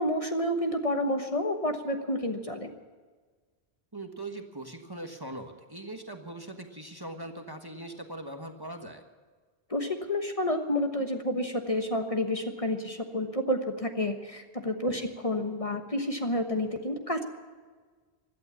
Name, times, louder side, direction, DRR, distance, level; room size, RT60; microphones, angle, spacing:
voice 1, 0.0-2.7 9.7-17.2, left 1 dB, 30° left, 5 dB, 1.3 m, -30 dB
voice 2, 3.9-9.0 14.9-15.0, right 1 dB, 20° right, 4 dB, 1.4 m, -41 dB
16.5 x 12.0 x 7.1 m, 1.4 s
omnidirectional pair, 1.1 m